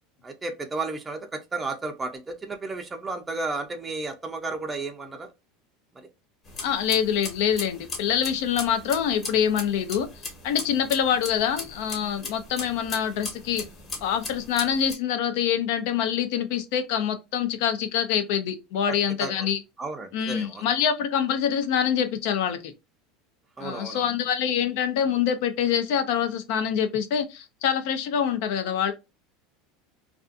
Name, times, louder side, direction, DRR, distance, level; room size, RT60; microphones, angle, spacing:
voice 1, 0.2-5.3 6.0-6.1 18.9-19.3 19.8-20.6 23.6-24.1, right 3 dB, 15° right, 0.5 m, -33 dB
sound 1, 6.5-14.9, left 3 dB, 30° left, 1.1 m, -39 dB
voice 2, 6.6-10.1 10.4-13.7 14.0-19.6 20.1-22.7 23.6-28.9, left 8 dB, 70° left, 0.6 m, -25 dB
2.5 x 2.4 x 2.4 m
supercardioid pair, 135°, 0 cm